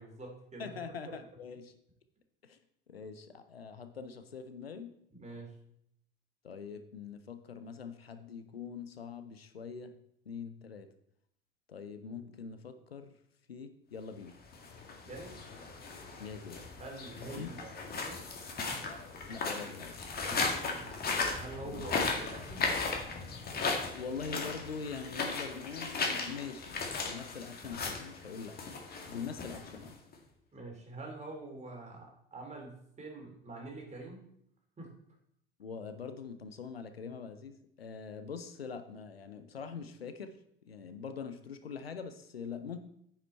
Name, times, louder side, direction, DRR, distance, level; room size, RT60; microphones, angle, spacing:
voice 1, 0.0-0.8 5.1-5.5 15.0-15.5 16.8-18.2 20.3-22.7 30.5-34.2 34.8-34.9, right 2 dB, 25° right, 1 dB, 2.9 m, -46 dB
voice 2, 0.6-1.7 2.4-2.6 2.9-4.9 6.4-9.9 10.3-10.9 11.7-13.1 13.5-14.3 16.2-16.6 17.3-17.5 19.3-20.0 21.7-21.9 23.9-26.8 27.0-28.6 29.1-30.0 35.6-40.4 40.6-42.8, left 6 dB, 85° left, 10 dB, 0.6 m, -43 dB
sound 1, 14.4-30.1, left 4 dB, 30° left, 1.9 m, -37 dB
9.4 x 5.6 x 4.4 m, 0.72 s
figure-of-eight pair, 70°, 29 cm